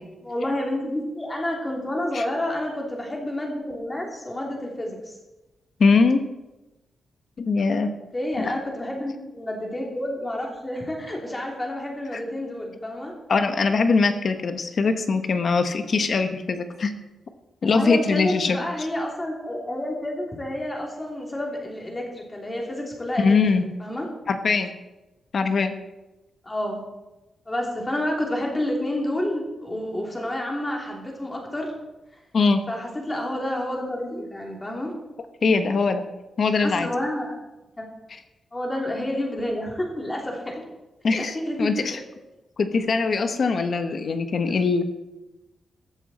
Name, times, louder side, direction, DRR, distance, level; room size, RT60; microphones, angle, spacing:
voice 1, 0.2-5.1 8.1-13.1 17.7-23.4 23.6-24.1 26.4-26.8 27.5-31.7 32.7-34.9 36.6-37.4 37.8-37.9 38.5-40.6 41.1-41.8, left 1 dB, 15° left, -1 dB, 3.1 m, -29 dB
voice 2, 5.8-6.2 7.4-7.9 8.4-8.5 12.1-12.2 13.3-16.9 17.6-18.6 23.2-23.6 24.3-24.7 25.3-25.7 32.3-32.6 35.4-36.0 36.4-36.9 41.0-42.0 42.6-44.8, left 4 dB, 50° left, 8 dB, 1.2 m, -22 dB
14.5 x 12.5 x 4.3 m, 1.0 s
wide cardioid pair, 155°, 0 cm